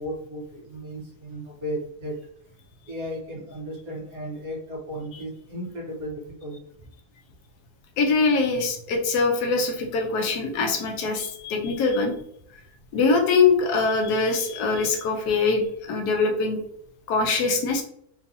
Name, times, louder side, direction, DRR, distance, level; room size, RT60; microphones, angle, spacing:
voice 1, 0.0-2.1 2.9-6.9, equal, 70° right, -5 dB, 1.5 m, -35 dB
voice 2, 8.0-12.1 12.9-16.6 17.1-17.8, left 4 dB, 90° left, 3 dB, 1.3 m, -23 dB
3.8 x 2.7 x 2.5 m, 0.70 s
omnidirectional pair, 1.6 m